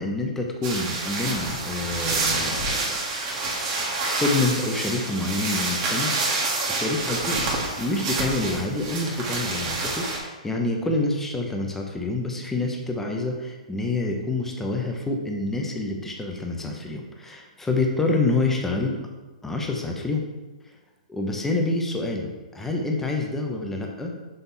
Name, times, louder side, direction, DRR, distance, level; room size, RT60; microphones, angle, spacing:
voice 1, 0.0-2.8 4.0-6.1 6.7-7.4 7.8-19.0 19.4-20.2 21.1-24.1, left 2 dB, 5° left, 1 dB, 1.0 m, -27 dB
sound 1, 0.6-10.2, right 3 dB, 40° right, 1.9 m, -28 dB
6.2 x 5.2 x 4.1 m, 1.2 s
hypercardioid pair, 130°, 4 cm